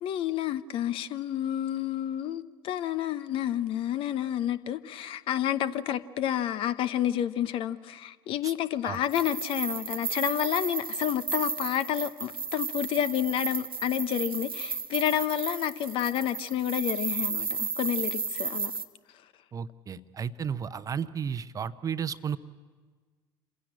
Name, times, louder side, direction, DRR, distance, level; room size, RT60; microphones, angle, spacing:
voice 1, 0.0-18.7, left 11 dB, 50° left, 0.8 m, -30 dB
sound 1, 9.0-18.9, right 5 dB, 85° right, 0.8 m, -34 dB
voice 2, 19.5-22.4, right 7 dB, 30° right, 0.8 m, -33 dB
27.0 x 16.0 x 8.6 m
figure-of-eight pair, 60°, 12 cm